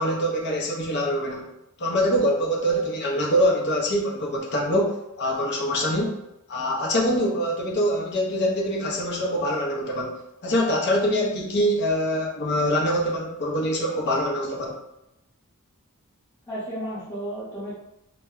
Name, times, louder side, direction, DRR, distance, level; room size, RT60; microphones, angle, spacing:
voice 1, 0.0-1.5 1.8-6.2 6.5-14.8, equal, 50° left, -1 dB, 0.6 m, -24 dB
voice 2, 16.5-17.7, right 1 dB, 15° left, -13 dB, 0.9 m, -34 dB
2.1 x 2.1 x 3.6 m, 0.86 s
head